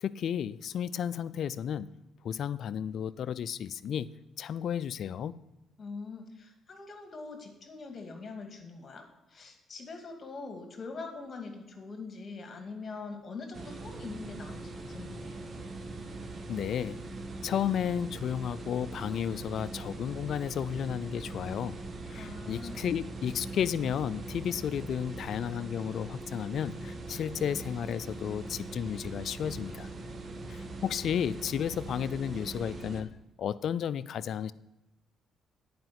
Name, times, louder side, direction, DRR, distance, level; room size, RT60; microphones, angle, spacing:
voice 1, 0.0-1.9 2.2-5.3 16.5-17.0 17.4-21.8 22.1-29.9 30.5-33.1 33.4-34.5, left 9 dB, 65° left, 18 dB, 0.4 m, -33 dB
voice 2, 5.8-15.4 22.2-22.8, left 4 dB, 45° left, 4 dB, 2.3 m, -43 dB
sound 1, 13.5-33.0, right 2 dB, 40° right, 1.5 m, -41 dB
10.5 x 5.2 x 7.5 m, 0.97 s
supercardioid pair, 65°, 0 cm